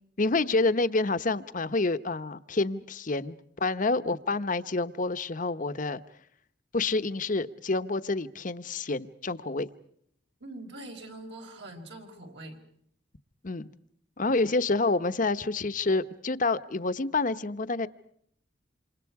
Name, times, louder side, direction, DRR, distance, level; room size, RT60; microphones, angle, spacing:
voice 1, 0.2-6.0 6.7-9.7 13.4-13.7 14.2-17.9, left 3 dB, 45° left, 13 dB, 1.0 m, -28 dB
voice 2, 10.4-12.6, right 1 dB, 70° right, 3 dB, 5.3 m, -43 dB
27.5 x 27.5 x 4.8 m, 0.69 s
head